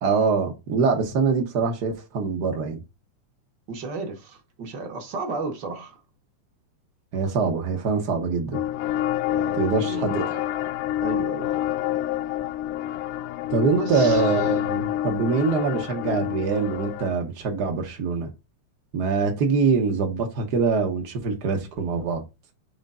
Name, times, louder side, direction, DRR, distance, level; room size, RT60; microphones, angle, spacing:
voice 1, 0.0-2.8 7.1-8.6 9.6-10.4 13.5-18.3 18.9-22.2, right 5 dB, 70° right, 0.9 m, -24 dB
voice 2, 3.7-6.0 9.3-10.4 11.0-11.5 13.8-14.3, right 4 dB, 55° right, 1.3 m, -34 dB
sound 1, 8.5-17.1, left 13 dB, 85° left, 2.1 m, -27 dB
5.1 x 3.8 x 5.4 m
omnidirectional pair, 3.5 m